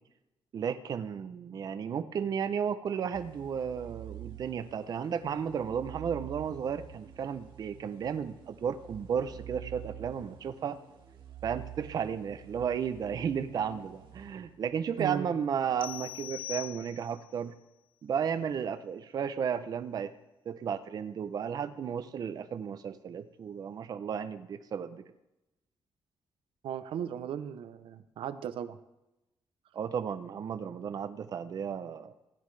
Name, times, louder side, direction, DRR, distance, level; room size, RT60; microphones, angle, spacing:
voice 1, 0.5-10.8 11.4-17.5 18.0-20.1 20.5-25.0 29.7-32.1, right 7 dB, 45° right, 10 dB, 0.5 m, -34 dB
sound 1, 3.1-15.0, right 10 dB, 65° right, 1.6 m, -48 dB
voice 2, 15.0-15.3 26.6-28.8, right 9 dB, 85° right, 11 dB, 0.6 m, -36 dB
sound 2, 15.8-17.3, left 13 dB, 85° left, 0.4 m, -41 dB
16.0 x 10.0 x 3.3 m, 0.96 s
wide cardioid pair, 165°, 9 cm